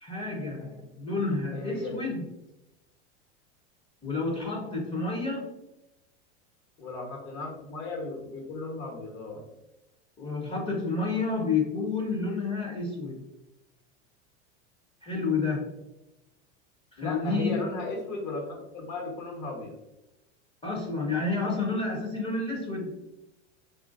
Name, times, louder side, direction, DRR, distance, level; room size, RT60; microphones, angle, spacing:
voice 1, 0.0-2.3 4.0-5.5 10.2-13.2 15.0-15.7 17.0-17.6 20.6-23.0, left 3 dB, 15° left, -2 dB, 0.6 m, -30 dB
voice 2, 1.5-2.1 6.8-9.4 17.0-19.7, left 2 dB, 55° left, 0 dB, 1.2 m, -36 dB
3.2 x 2.4 x 2.5 m, 0.95 s
hypercardioid pair, 100°, 34 cm